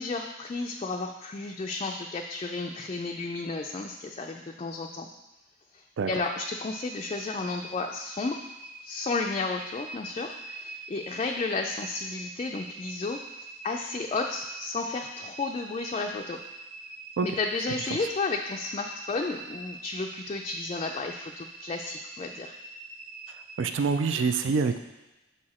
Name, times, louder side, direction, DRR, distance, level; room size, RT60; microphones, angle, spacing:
voice 1, 0.0-5.1 5.7-8.4 8.8-16.4 17.2-22.5, left 3 dB, 35° left, 2 dB, 0.3 m, -32 dB
sound 1, 6.2-23.9, right 2 dB, 45° right, 0.7 m, -44 dB
voice 2, 23.6-24.8, right 5 dB, 80° right, 8 dB, 0.4 m, -25 dB
6.7 x 4.8 x 4.2 m, 1.0 s
head